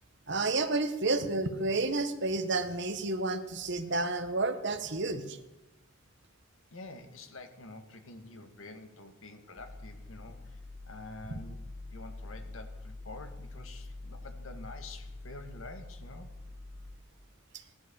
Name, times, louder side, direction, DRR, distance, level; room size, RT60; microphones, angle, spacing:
voice 1, 0.3-5.4 17.5-17.6, right 2 dB, 60° right, 8 dB, 1.5 m, -30 dB
voice 2, 6.7-10.6 10.8-11.6 11.9-16.3, left 2 dB, 85° left, 6 dB, 2.0 m, -48 dB
sound 1, 9.6-16.9, left 2 dB, 65° left, 4.8 m, -45 dB
17.5 x 11.5 x 7.1 m, 0.92 s
head